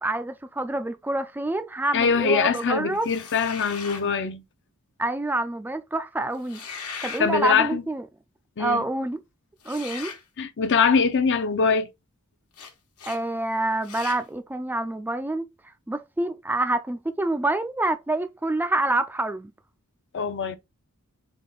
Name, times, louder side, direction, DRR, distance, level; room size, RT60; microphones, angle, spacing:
voice 1, 0.0-3.1 5.0-6.6 7.0-8.0 8.6-9.2 9.7-10.1 13.0-15.5 15.9-19.5, right 2 dB, 10° right, 0.3 m, -27 dB
voice 2, 1.9-4.4 7.2-7.8 8.6-8.8 10.4-11.9 20.1-20.6, left 5 dB, 55° left, 0.6 m, -23 dB
sound 1, 3.0-4.1 6.4-7.3 9.6-10.2 12.5-12.7 13.0-13.2 13.8-14.2, left 6 dB, 85° left, 1.3 m, -38 dB
3.7 x 3.6 x 3.8 m
head